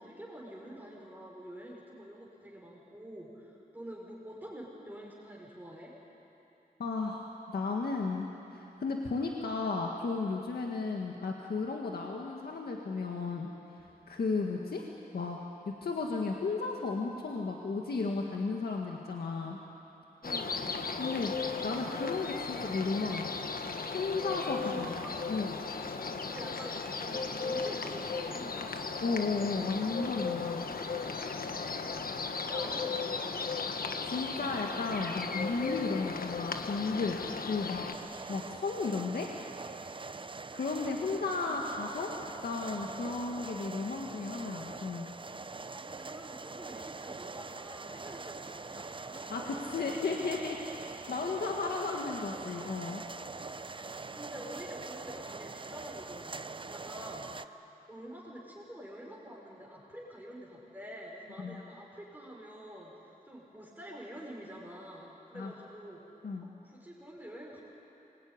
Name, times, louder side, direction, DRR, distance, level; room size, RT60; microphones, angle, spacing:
voice 1, 0.0-5.9 20.2-21.2 24.3-25.1 26.3-28.7 30.8-31.3 32.4-33.3 41.4-41.9 45.5-49.3 53.7-57.6 57.9-66.0 66.6-67.6, equal, 10° right, -4 dB, 5.3 m, -47 dB
voice 2, 6.8-7.3 7.5-13.5 14.1-14.8 15.1-15.4 15.8-19.6 21.0-21.3 21.6-23.4 23.9-24.9 25.3-25.6 29.0-30.7 34.0-37.2 37.5-39.3 40.5-42.1 42.4-45.1 49.3-50.6 51.1-53.0 61.4-61.6 65.3-65.5 66.2-66.5, left 4 dB, 90° left, 0 dB, 1.9 m, -34 dB
sound 1, 20.2-38.0, left 4 dB, 70° left, 1.4 m, -36 dB
sound 2, 37.9-57.5, right 4 dB, 35° right, 0.6 m, -43 dB
25.5 x 22.0 x 9.7 m, 2.9 s
wide cardioid pair, 100°, 16 cm